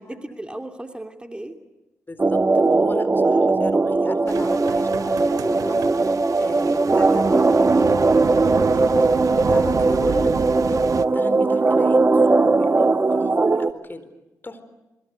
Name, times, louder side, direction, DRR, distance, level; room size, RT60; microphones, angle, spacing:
voice 1, 0.0-1.6 13.4-13.6, right 1 dB, 15° right, 6 dB, 2.8 m, -36 dB
voice 2, 2.1-8.0 8.7-14.1 14.4-14.6, left 2 dB, 30° left, 11 dB, 4.2 m, -37 dB
sound 1, 2.2-13.7, right 3 dB, 30° right, 1.3 m, -19 dB
sound 2, 4.3-11.1, right 6 dB, 60° right, 1.1 m, -31 dB
sound 3, 4.3-6.0 6.4-6.7 8.3-8.4, right 7 dB, 80° right, 2.9 m, -38 dB
26.0 x 23.0 x 8.3 m, 0.99 s
supercardioid pair, 50°, 7 cm